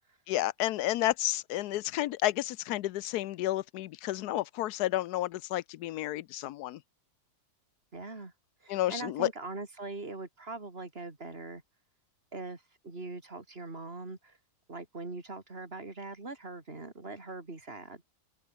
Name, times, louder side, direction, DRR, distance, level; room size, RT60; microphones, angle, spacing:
voice 1, 0.3-6.8 8.7-9.3, left 15 dB, 85° left, 1.2 m, -31 dB
voice 2, 7.9-8.3 8.6-11.6 12.3-14.4 14.7-18.0, right 3 dB, 40° right, 3.6 m, -42 dB
open air
omnidirectional pair, 1.6 m